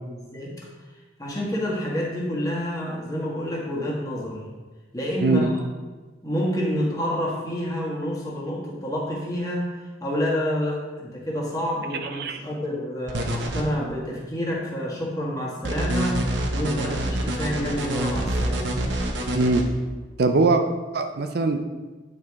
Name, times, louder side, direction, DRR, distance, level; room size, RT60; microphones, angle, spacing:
voice 1, 0.1-0.7 1.2-4.4 4.9-5.6 6.2-9.7 10.0-16.2 16.5-18.6, equal, 20° left, -3 dB, 1.4 m, -28 dB
sound 1, 13.1-13.6 15.6-19.6, right 1 dB, 70° right, 0.9 m, -26 dB
voice 2, 20.2-20.6 20.9-21.6, right 3 dB, 55° right, 6 dB, 0.4 m, -21 dB
8.6 x 4.8 x 3.5 m, 1.3 s
head